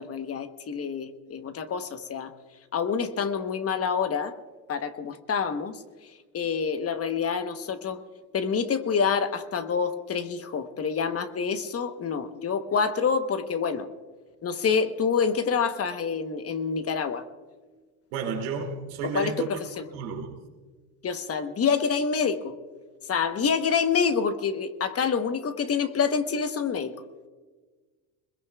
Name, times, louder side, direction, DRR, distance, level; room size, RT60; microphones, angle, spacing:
voice 1, 0.0-2.3 2.7-4.3 4.7-5.8 6.3-8.0 8.3-13.9 14.4-17.2 19.0-19.9 21.0-22.5 23.1-26.9, left 6 dB, 35° left, 1.1 m, -27 dB
voice 2, 18.1-19.5 19.9-20.4, right 6 dB, 90° right, 2.7 m, -32 dB
21.5 x 21.5 x 2.4 m
supercardioid pair, 105°, 42 cm